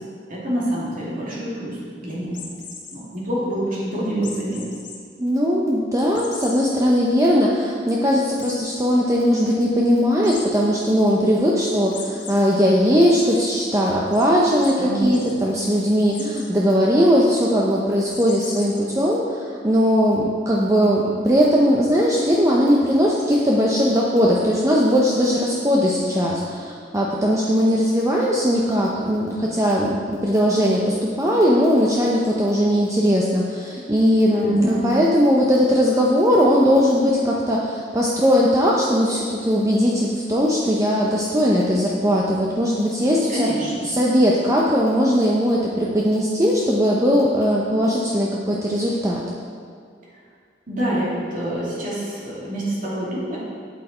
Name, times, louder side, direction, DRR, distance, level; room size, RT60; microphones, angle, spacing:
voice 1, 0.3-2.4 2.9-4.6 14.8-15.5 34.3-34.9 43.3-43.9 50.7-53.4, right 1 dB, 50° right, -7 dB, 2.6 m, -26 dB
sound 1, 2.3-3.0 4.2-5.0 5.4-5.5 6.1-6.6 7.1-7.2 7.5-7.6 8.4-8.8 10.2-10.5 11.9-12.3 12.8-13.4 14.1-14.2 14.6-14.7 15.0-15.3 16.1-16.5 18.1-18.8, left 5 dB, 70° left, 1.5 m, -38 dB
voice 2, 5.2-43.5 43.8-49.2, equal, 15° right, -4 dB, 0.7 m, -19 dB
8.2 x 8.0 x 4.3 m, 2.1 s
head